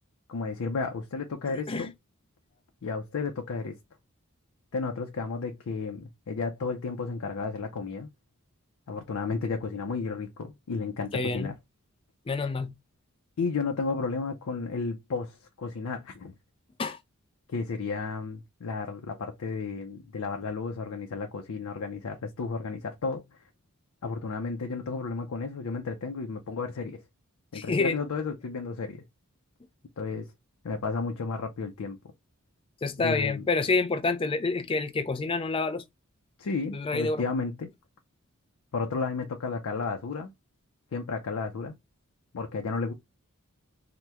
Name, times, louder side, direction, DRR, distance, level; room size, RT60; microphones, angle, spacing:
voice 1, 0.3-1.9 2.8-3.8 4.7-8.1 8.9-11.5 13.4-16.3 17.5-23.2 24.0-27.0 27.5-29.0 30.0-30.3 30.6-32.0 33.0-33.4 36.4-37.7 38.7-40.3 40.9-41.8 42.3-42.9, left 4 dB, 85° left, 0.5 m, -33 dB
voice 2, 11.1-11.5 12.3-12.7 16.8-17.0 27.5-28.0 32.8-35.8 36.7-37.2, left 3 dB, 25° left, 0.4 m, -28 dB
2.9 x 2.1 x 3.4 m
head